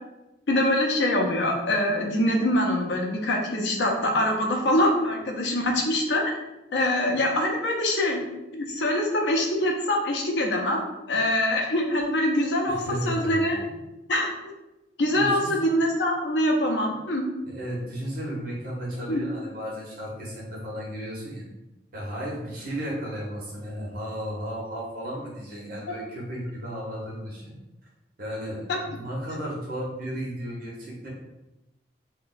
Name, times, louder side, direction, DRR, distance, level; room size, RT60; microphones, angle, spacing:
voice 1, 0.5-6.4 6.7-8.2 8.5-10.8 11.1-13.6 14.1-14.3 15.0-17.2 19.1-19.2 28.7-28.8, left 1 dB, 85° left, 1 dB, 0.6 m, -24 dB
voice 2, 12.7-13.7 15.1-15.5 17.5-21.4 21.9-27.5 28.2-31.1, equal, 55° right, -4 dB, 1.2 m, -34 dB
2.9 x 2.2 x 3.9 m, 1.0 s
head